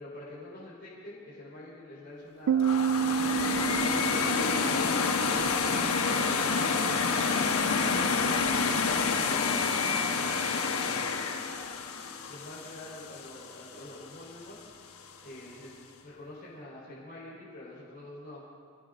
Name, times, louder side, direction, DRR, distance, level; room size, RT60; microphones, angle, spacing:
voice 1, 0.0-5.1 5.6-7.9 8.1-9.4 10.1-11.3 12.3-14.9 15.2-15.7 16.0-18.4, left 1 dB, 45° left, -9 dB, 5.0 m, -46 dB
Piano, 2.5-5.9, right 8 dB, 80° right, 0.3 m, -30 dB
sound 1, 2.6-13.6, left 5 dB, 85° left, 1.2 m, -28 dB
28.5 x 18.5 x 2.6 m, 2.2 s
head